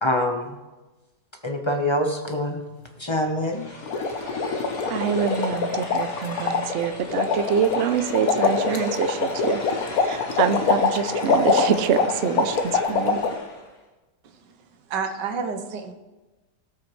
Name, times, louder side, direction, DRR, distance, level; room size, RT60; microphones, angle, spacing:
voice 1, 0.0-0.6 1.4-2.6 3.0-3.7, left 1 dB, 20° left, 2 dB, 0.7 m, -25 dB
sound 1, 3.4-13.8, left 1 dB, 45° left, 1.8 m, -38 dB
sound 2, 3.8-13.3, left 4 dB, 60° left, 1.3 m, -24 dB
voice 2, 4.9-9.6 10.0-13.2, right 7 dB, 65° right, 10 dB, 0.7 m, -25 dB
voice 3, 14.9-15.9, right 5 dB, 85° right, 6 dB, 1.6 m, -29 dB
18.5 x 6.1 x 3.2 m, 1.1 s
omnidirectional pair, 1.9 m